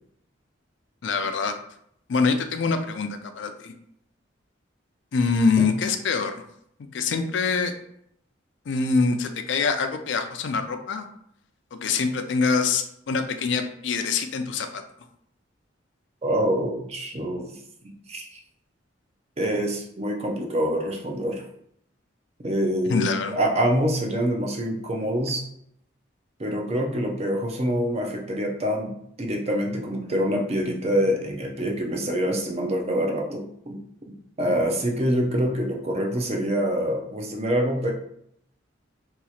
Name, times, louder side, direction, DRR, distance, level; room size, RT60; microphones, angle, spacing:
voice 1, 1.0-1.5 2.1-3.7 5.1-6.4 6.9-7.7 8.7-11.1 11.7-14.8 22.8-23.4, left 4 dB, 65° left, 7 dB, 0.4 m, -24 dB
voice 2, 16.2-17.6 17.8-18.3 19.4-21.4 22.4-25.4 26.4-28.9 29.2-33.8 34.4-37.9, equal, 30° right, 2 dB, 0.5 m, -25 dB
2.9 x 2.4 x 4.0 m, 0.71 s
head